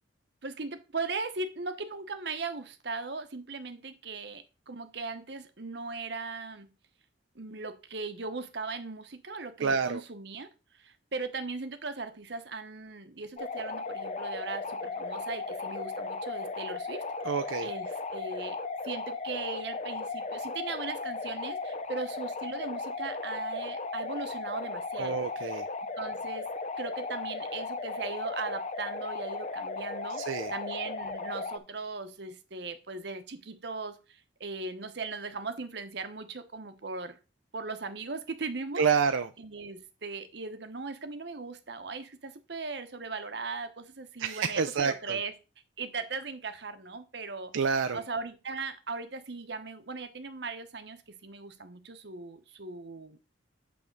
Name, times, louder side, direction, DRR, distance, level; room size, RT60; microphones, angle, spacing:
voice 1, 0.4-6.7 7.3-17.0 17.6-18.6 18.8-25.2 26.0-26.5 26.8-30.2 30.5-37.2 37.5-38.8 39.4-45.3 45.8-47.5 47.9-53.2, right 4 dB, 60° right, 1.0 m, -38 dB
voice 2, 9.6-10.0 17.2-17.7 25.0-25.6 30.2-30.5 38.8-39.3 44.2-45.2 47.5-48.0, right 5 dB, 80° right, 0.5 m, -28 dB
sound 1, 13.4-31.6, left 3 dB, 35° left, 0.5 m, -36 dB
8.6 x 3.5 x 6.5 m
head